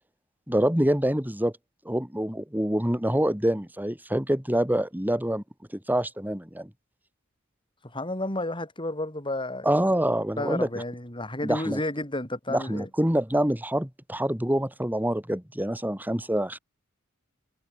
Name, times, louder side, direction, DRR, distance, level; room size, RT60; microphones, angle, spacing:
voice 1, 0.5-1.5 1.9-5.4 5.9-6.7 9.6-10.7 11.4-11.8 12.5-16.6, right 1 dB, 10° right, 3.5 m, -26 dB
voice 2, 7.8-9.7 10.4-12.9, left 1 dB, 25° left, 7.4 m, -31 dB
head